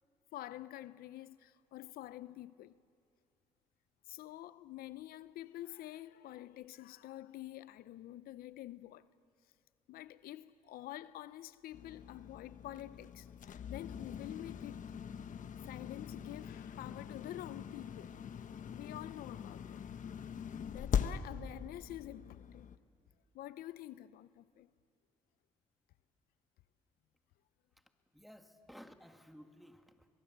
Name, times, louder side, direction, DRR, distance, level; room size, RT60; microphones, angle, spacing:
voice 1, 0.3-2.8 4.1-9.0 9.9-15.0 15.6-18.2 18.7-19.8 20.7-22.7 23.3-24.7, left 14 dB, 80° left, 0.6 m, -48 dB
sound 1, 11.7-22.8, left 8 dB, 60° left, 1.1 m, -42 dB
voice 2, 28.1-30.1, equal, ahead, 1.8 m, -56 dB
24.0 x 22.0 x 7.4 m
supercardioid pair, 70°, 15 cm